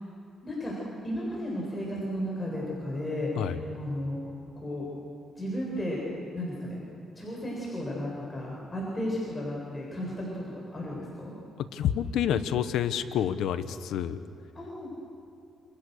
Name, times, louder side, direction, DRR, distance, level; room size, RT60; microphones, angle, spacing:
voice 1, 0.4-0.7 1.0-3.3 3.7-4.2 4.6-4.8 5.4-6.0 6.3-6.8 7.2-10.4 10.7-11.3 14.6-15.0, left 1 dB, 20° left, -4 dB, 7.7 m, -34 dB
voice 2, 11.7-14.2, left 9 dB, 80° left, 11 dB, 1.3 m, -28 dB
29.5 x 28.5 x 6.7 m, 2.5 s
cardioid pair, 90°, 0 cm